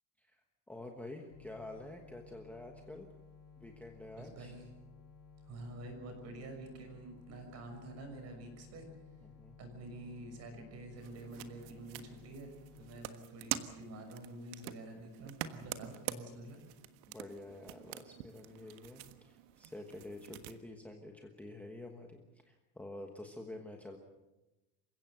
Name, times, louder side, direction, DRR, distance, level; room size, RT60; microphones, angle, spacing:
voice 1, 0.7-3.1 3.6-4.5 9.2-9.6 17.1-22.2 22.5-24.0, left 2 dB, 5° left, 2 dB, 1.2 m, -48 dB
sound 1, 1.3-13.1, left 6 dB, 50° left, 6.0 m, -57 dB
voice 2, 4.2-4.7 5.4-8.9 9.6-16.6, right 2 dB, 35° right, 5 dB, 6.2 m, -48 dB
sound 2, 11.0-20.6, right 13 dB, 70° right, 1.5 m, -46 dB
28.0 x 16.5 x 7.8 m, 1.0 s
cardioid pair, 180°, 43 cm